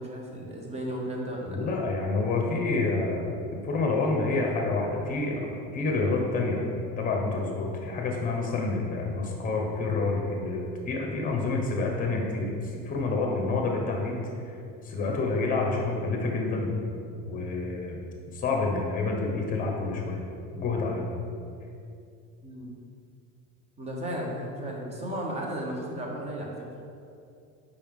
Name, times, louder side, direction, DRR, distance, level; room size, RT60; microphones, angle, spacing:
voice 1, 0.0-1.6 22.4-22.7 23.8-26.5, equal, 20° right, -1 dB, 0.9 m, -34 dB
voice 2, 1.5-6.6 7.0-12.5 12.8-14.5 14.8-16.7 17.3-18.0 18.3-20.2 20.5-21.1, left 3 dB, 25° left, 0 dB, 1.0 m, -28 dB
5.5 x 4.7 x 3.7 m, 2.5 s
cardioid pair, 140°, 32 cm